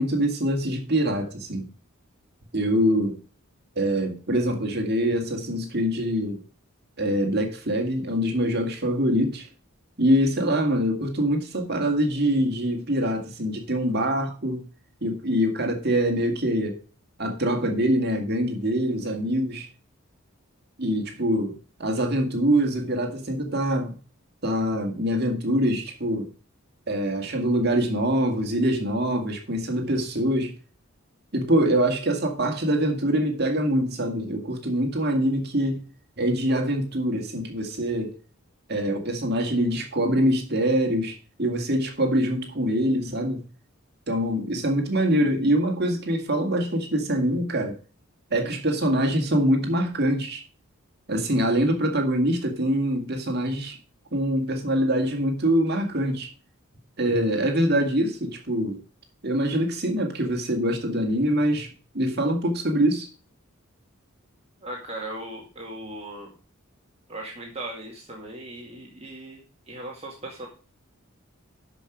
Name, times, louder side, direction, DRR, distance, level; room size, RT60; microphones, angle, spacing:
voice 1, 0.0-1.7 2.5-3.2 3.8-6.4 7.0-9.5 10.0-14.6 15.0-16.8 17.2-19.7 20.8-23.9 24.4-26.3 26.9-30.5 31.3-35.8 36.2-38.2 38.7-43.4 44.1-47.7 48.3-50.4 51.1-53.8 54.1-56.3 57.0-58.8 59.2-61.7 61.9-63.1, equal, 50° right, 2.1 m, -24 dB
voice 2, 64.6-66.3 67.1-70.5, right 1 dB, 30° right, 2.2 m, -38 dB
12.5 x 5.5 x 5.1 m
head